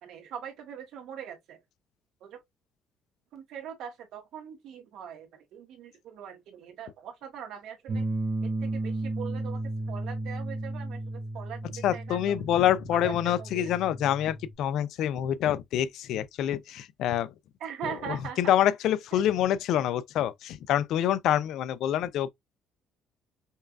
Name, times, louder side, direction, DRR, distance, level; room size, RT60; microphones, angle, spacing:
voice 1, 0.0-1.6 2.2-2.4 3.3-8.1 8.6-12.4 12.9-13.7 17.6-18.5 19.1-19.2, right 8 dB, 70° right, 1.2 m, -42 dB
sound 1, 7.9-14.5, right 2 dB, 30° right, 0.7 m, -34 dB
voice 2, 11.8-17.3 17.8-22.3, left 11 dB, 70° left, 0.4 m, -26 dB
5.3 x 2.4 x 2.3 m
cardioid pair, 140°, 0 cm